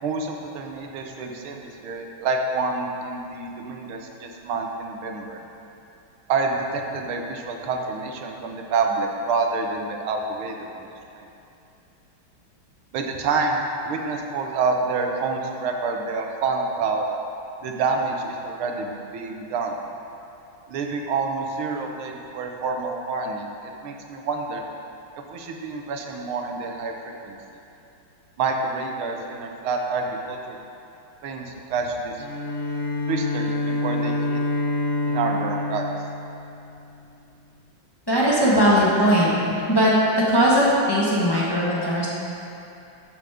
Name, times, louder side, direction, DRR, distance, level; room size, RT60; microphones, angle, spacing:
voice 1, 0.0-5.4 6.3-10.9 11.2-11.3 12.9-17.1 17.6-19.8 20.7-24.6 25.3-26.9 27.2-27.4 28.4-30.6 31.2-32.3 33.1-34.4 35.0-35.9, right 4 dB, 85° right, 2 dB, 1.8 m, -28 dB
Bowed string instrument, 32.2-37.0, left 1 dB, 50° left, 0.9 m, -27 dB
voice 2, 38.1-39.3 39.7-39.9 40.3-42.1, equal, 15° left, -7 dB, 1.2 m, -19 dB
13.0 x 5.1 x 5.0 m, 2.8 s
omnidirectional pair, 2.3 m